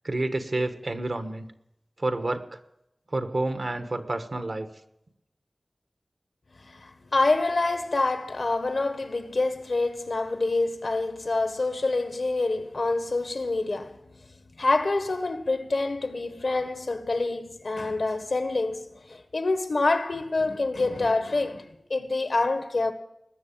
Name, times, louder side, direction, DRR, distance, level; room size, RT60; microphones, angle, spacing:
voice 1, 0.0-1.5 2.0-2.6 3.1-4.7, right 2 dB, 65° right, 1.4 m, -29 dB
voice 2, 6.6-14.0 14.6-22.9, left 3 dB, 80° left, 1.5 m, -26 dB
20.0 x 6.9 x 8.7 m
wide cardioid pair, 45°, 0 cm